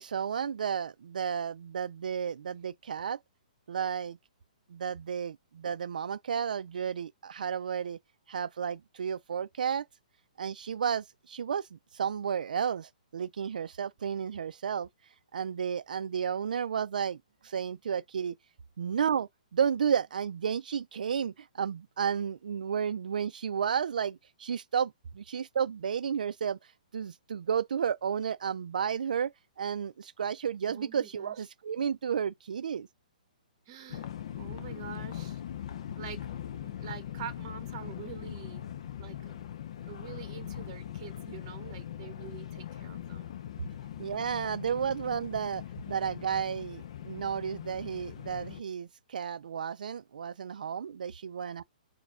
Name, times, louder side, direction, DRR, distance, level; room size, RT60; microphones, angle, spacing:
voice 1, 0.0-3.2 3.7-4.2 4.7-8.0 8.3-9.9 10.4-14.9 15.3-17.2 17.4-18.3 18.8-32.9 44.0-51.6, right 7 dB, 75° right, 0.4 m, -32 dB
voice 2, 30.6-31.4 33.7-34.1 34.4-35.4 36.0-36.3 36.6-38.7 39.0-39.4 39.9-43.3 43.6-43.7, right 8 dB, 30° right, 1.2 m, -45 dB
sound 1, 33.9-48.6, left 10 dB, 45° left, 0.4 m, -41 dB
4.8 x 2.2 x 4.7 m
hypercardioid pair, 170°, 4 cm